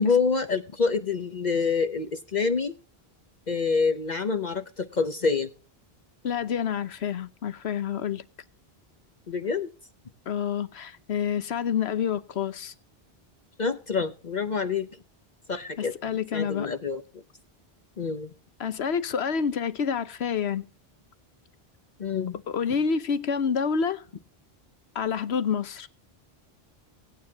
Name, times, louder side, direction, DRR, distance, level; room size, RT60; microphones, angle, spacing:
voice 1, 0.0-2.7 3.5-5.5 9.3-9.7 13.6-14.9 15.5-15.9 16.3-17.0 18.0-18.3 22.0-22.4, left 5 dB, 45° left, 0.9 m, -26 dB
voice 2, 6.2-8.2 10.3-12.7 15.8-16.7 18.6-20.6 22.5-24.0 24.9-25.9, left 7 dB, 90° left, 1.2 m, -28 dB
18.0 x 9.7 x 2.8 m
omnidirectional pair, 1.1 m